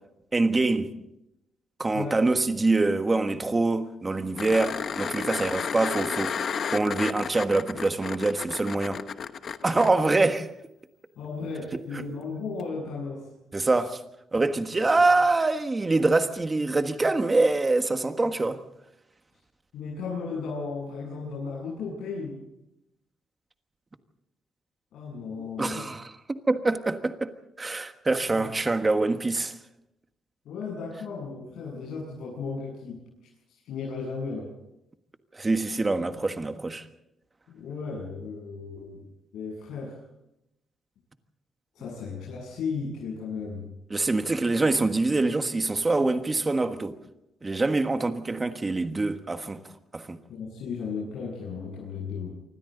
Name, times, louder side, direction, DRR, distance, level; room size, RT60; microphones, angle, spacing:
voice 1, 0.3-0.9 1.8-6.3 6.7-9.0 9.6-10.5 11.7-12.0 13.5-14.0 14.3-18.6 25.4-27.3 27.6-29.5 35.3-36.9 43.9-47.0 47.4-49.6 49.9-50.2, right 3 dB, 20° right, 1.4 m, -25 dB
sound 1, 4.4-9.9 12.6-12.7, left 7 dB, 45° left, 1.0 m, -32 dB
voice 2, 11.2-13.3 14.7-14.8 19.7-22.4 24.9-25.9 28.3-28.5 30.4-33.0 33.7-34.5 37.5-39.0 39.3-40.0 41.7-43.7 50.3-52.3, left 4 dB, 80° left, 7.7 m, -35 dB
26.5 x 24.5 x 4.0 m
cardioid pair, 150°, 0 cm